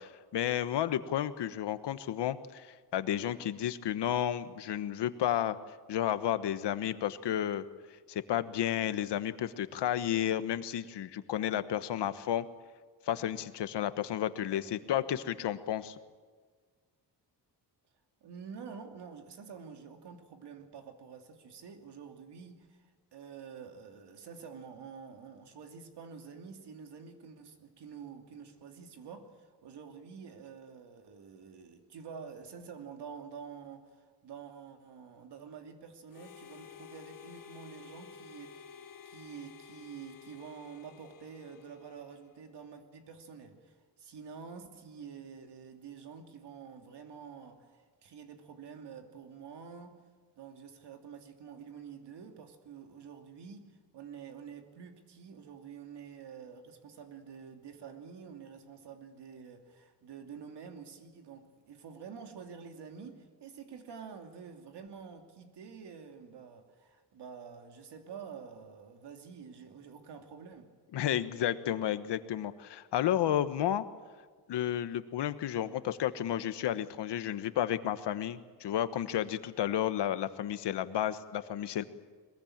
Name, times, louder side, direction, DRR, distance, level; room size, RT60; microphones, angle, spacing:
voice 1, 0.0-2.7 2.9-5.6 5.9-7.7 8.1-12.4 13.1-15.9 70.9-73.8 74.5-81.8, left 11 dB, 85° left, 1.2 m, -32 dB
voice 2, 18.2-38.7 39.0-50.0 50.4-70.7, right 6 dB, 75° right, 2.8 m, -48 dB
Harmonica, 36.1-42.5, left 6 dB, 50° left, 1.5 m, -52 dB
22.0 x 21.5 x 8.8 m
cardioid pair, 120°, 41 cm